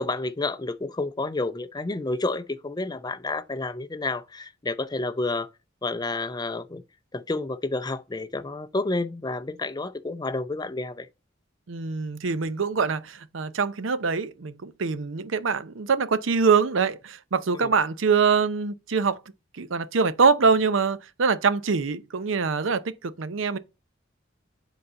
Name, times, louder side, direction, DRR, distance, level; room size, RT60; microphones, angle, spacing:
voice 1, 0.0-5.5 5.8-6.8 7.1-11.1 17.5-17.7, left 2 dB, 20° left, 0.5 m, -30 dB
voice 2, 11.7-19.2 19.6-23.6, right 5 dB, 80° right, 0.6 m, -24 dB
7.9 x 4.1 x 5.1 m
head